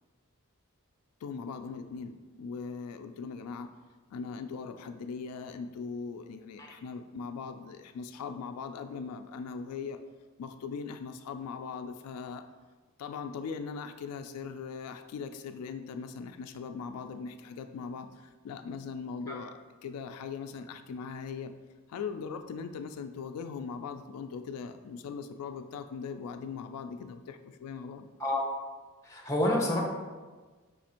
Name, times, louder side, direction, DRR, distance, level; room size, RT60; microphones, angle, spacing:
voice 1, 1.2-3.7 4.1-10.0 10.4-12.4 13.0-19.5 19.8-21.5 21.9-28.1, left 5 dB, 85° left, 12 dB, 0.3 m, -40 dB
voice 2, 29.0-29.8, left 1 dB, 15° left, -1 dB, 0.7 m, -28 dB
4.9 x 2.5 x 4.3 m, 1.3 s
head